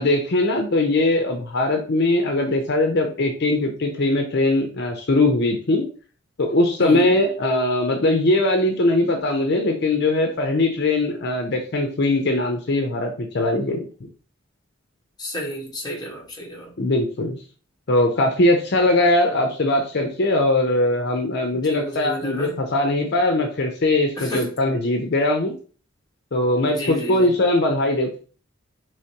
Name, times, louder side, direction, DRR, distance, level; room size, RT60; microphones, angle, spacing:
voice 1, 0.0-5.9 6.4-13.9 16.8-17.4 17.9-25.6 26.3-28.2, left 2 dB, 60° left, 0.7 m, -20 dB
voice 2, 6.8-7.1 15.2-16.7 21.7-22.6 24.2-24.5 26.6-27.3, equal, 20° left, 1.3 m, -31 dB
4.9 x 3.2 x 2.8 m
head